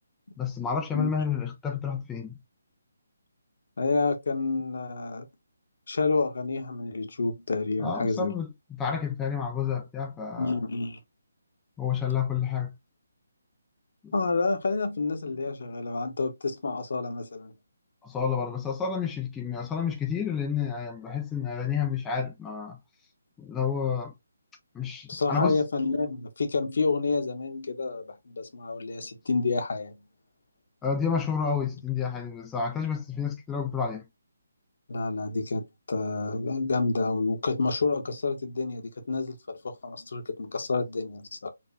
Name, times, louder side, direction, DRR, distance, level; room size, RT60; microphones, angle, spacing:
voice 1, 0.4-2.4 7.8-10.6 11.8-12.7 14.0-14.1 18.0-22.8 23.4-24.1 24.7-25.6 30.8-34.0, left 7 dB, 10° left, 0.5 m, -30 dB
voice 2, 3.8-5.3 5.9-8.3 10.4-11.0 14.1-17.5 25.1-30.0 34.9-41.5, left 3 dB, 55° left, 0.9 m, -29 dB
4.3 x 2.8 x 2.7 m
figure-of-eight pair, 145°, 0 cm